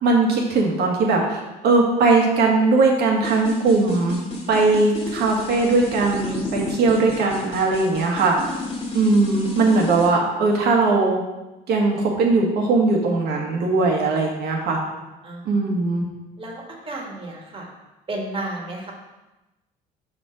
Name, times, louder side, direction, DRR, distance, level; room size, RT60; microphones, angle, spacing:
voice 1, 0.0-4.2 4.5-8.4 8.9-11.2 11.7-14.8 15.4-16.0, right 3 dB, 70° right, 0 dB, 1.6 m, -19 dB
sound 1, 3.2-10.1, left 2 dB, 30° left, 1.6 m, -31 dB
voice 2, 15.2-15.6 16.4-17.7 18.1-18.9, right 2 dB, 30° right, -1 dB, 1.6 m, -32 dB
5.5 x 5.1 x 5.0 m, 1.0 s
cardioid pair, 110°, 17 cm